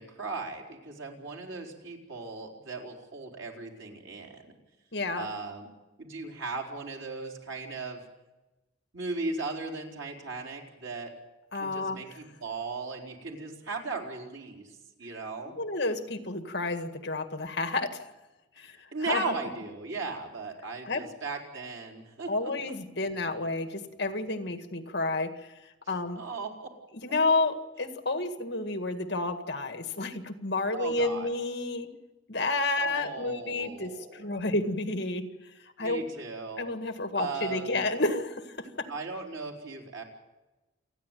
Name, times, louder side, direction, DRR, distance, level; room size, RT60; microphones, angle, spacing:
voice 1, 0.0-4.5 5.1-5.7 6.0-8.0 8.9-11.1 11.6-15.5 18.9-22.3 25.9-26.7 30.7-31.3 32.8-34.2 35.8-36.7 37.2-37.8 38.9-40.0, right 3 dB, 90° right, 1 dB, 4.3 m, -37 dB
voice 2, 4.9-5.3 11.5-12.0 15.4-18.0 18.6-19.3 20.9-21.0 22.3-25.3 25.9-26.2 27.0-31.9 32.3-35.3 35.8-36.0 36.6-38.9, left 2 dB, 60° left, 8 dB, 1.9 m, -30 dB
28.5 x 10.5 x 9.2 m, 1.0 s
head